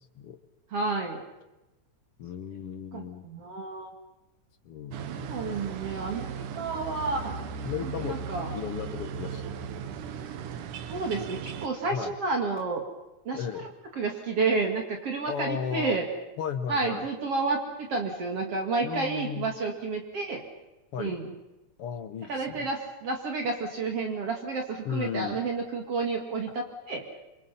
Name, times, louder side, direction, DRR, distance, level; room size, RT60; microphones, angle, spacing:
voice 1, 0.7-1.2 2.9-3.9 5.1-7.3 7.8-8.5 10.9-12.8 13.3-13.7 14.0-16.0 16.7-20.4 21.0-21.3 22.3-27.0, right 3 dB, 50° right, 2 dB, 2.9 m, -30 dB
voice 2, 2.2-3.3 4.6-5.7 7.6-9.7 11.8-12.2 13.3-13.7 15.3-16.0 16.4-17.0 18.8-19.6 20.9-21.2 21.8-22.7 24.9-25.4, left 7 dB, 60° left, 10 dB, 1.8 m, -35 dB
sound 1, 4.9-11.7, right 6 dB, 90° right, 2.7 m, -37 dB
28.0 x 24.5 x 5.6 m, 1.0 s
omnidirectional pair, 3.5 m